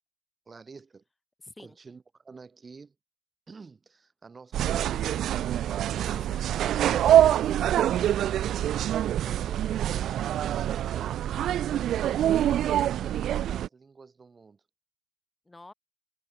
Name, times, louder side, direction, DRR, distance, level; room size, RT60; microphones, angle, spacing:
voice 1, 0.5-1.0 1.6-2.9 3.5-6.1 9.2-11.7 12.2-14.6, right 4 dB, 35° right, 3.0 m, -49 dB
voice 2, 1.4-1.8 6.0-7.6 15.5-15.7, left 2 dB, 15° left, 2.6 m, -49 dB
sound 1, 4.5-13.7, right 11 dB, 75° right, 0.3 m, -25 dB
cardioid pair, 90°, 0 cm